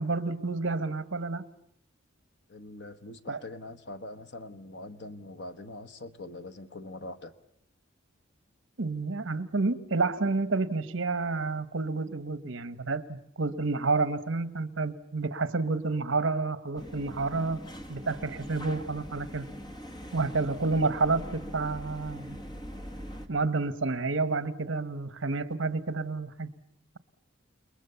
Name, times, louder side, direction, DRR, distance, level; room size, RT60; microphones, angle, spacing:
voice 1, 0.0-1.4 3.3-3.4 8.8-17.6 17.9-19.5 20.1-22.4 23.3-26.5, right 3 dB, 70° right, 1.1 m, -29 dB
voice 2, 2.5-7.3, left 2 dB, 60° left, 1.2 m, -43 dB
sound 1, 16.8-23.3, equal, 20° left, 1.5 m, -42 dB
29.5 x 20.5 x 7.0 m
head